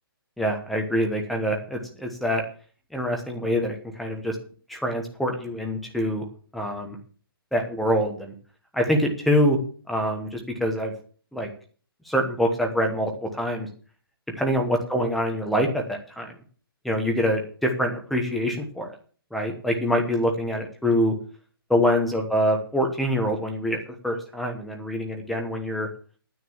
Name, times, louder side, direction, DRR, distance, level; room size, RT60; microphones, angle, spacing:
voice 1, 0.4-2.4 2.9-4.4 4.7-6.2 6.5-7.0 7.5-8.3 8.7-9.6 9.9-10.9 11.3-11.5 12.1-13.7 14.4-16.3 16.8-18.9 19.3-21.1 21.7-23.8 24.0-25.9, equal, ahead, 2 dB, 1.1 m, -25 dB
9.6 x 9.1 x 7.2 m, 0.43 s
hypercardioid pair, 175°, 13 cm